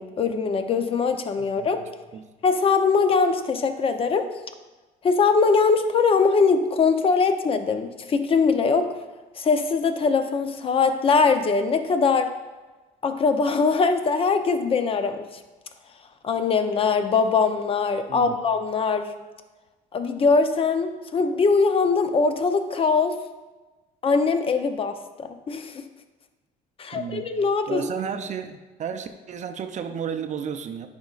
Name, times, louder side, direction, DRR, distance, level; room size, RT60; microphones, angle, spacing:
voice 1, 0.0-1.8 2.4-4.3 5.0-8.9 9.4-12.3 13.0-15.3 16.2-19.1 19.9-23.2 24.0-25.8 26.8-27.9, left 4 dB, 35° left, 8 dB, 0.6 m, -22 dB
voice 2, 1.4-2.2 18.1-18.4 26.9-27.2 27.7-30.9, right 7 dB, 45° right, 7 dB, 0.5 m, -33 dB
10.0 x 5.2 x 2.4 m, 1.2 s
cardioid pair, 110°, 17 cm